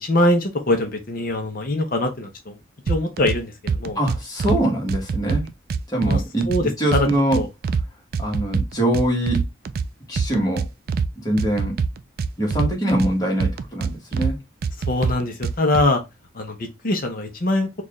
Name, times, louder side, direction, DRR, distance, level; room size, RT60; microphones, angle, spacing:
voice 1, 0.0-2.6 2.9-4.0 6.0-6.2 6.5-7.1 7.3-7.5 14.9-16.0 16.3-17.8, left 1 dB, 45° left, 0.7 m, -23 dB
sound 1, 2.9-3.4 3.7-4.6 4.9-6.6 6.9-7.8 8.1-9.9 10.2-11.1 11.4-13.1 13.4-14.3 14.6-15.8, right 5 dB, 50° right, 0.3 m, -24 dB
voice 2, 3.9-5.5 5.9-6.5 6.8-7.4 8.2-9.4 10.1-10.7 11.2-11.8 12.4-14.4, right 1 dB, 20° left, 1.4 m, -23 dB
4.4 x 2.4 x 3.0 m
head